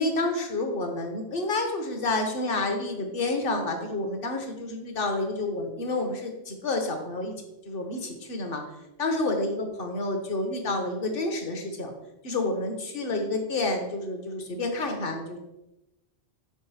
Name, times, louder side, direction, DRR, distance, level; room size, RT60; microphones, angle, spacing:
voice 1, 0.0-7.3 7.7-8.6 9.0-11.9 12.2-15.4, left 2 dB, 60° left, 4 dB, 1.1 m, -29 dB
5.9 x 3.6 x 4.6 m, 0.95 s
omnidirectional pair, 1.1 m